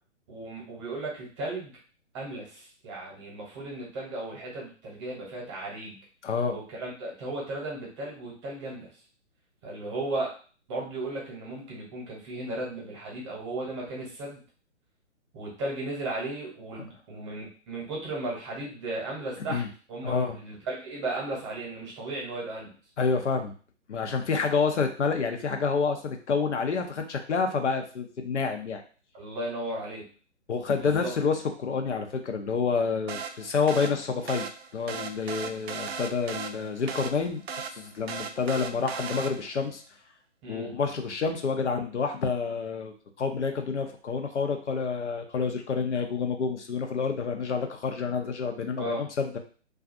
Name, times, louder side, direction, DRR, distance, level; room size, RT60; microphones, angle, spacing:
voice 1, 0.3-1.7 2.1-6.0 6.5-8.9 9.6-10.3 10.7-14.4 15.3-19.6 19.9-22.7 29.1-30.1 30.8-31.1 40.4-40.7 48.8-49.1, right 2 dB, 25° right, -3 dB, 0.9 m, -35 dB
voice 2, 6.2-6.5 19.5-19.7 20.0-20.4 23.0-23.5 23.9-28.8 30.5-34.5 34.7-39.8 40.5-49.4, left 5 dB, 75° left, 4 dB, 0.6 m, -28 dB
sound 1, 33.1-39.7, right 6 dB, 60° right, 0.4 m, -37 dB
2.5 x 2.4 x 2.5 m, 0.39 s
figure-of-eight pair, 130°, 36 cm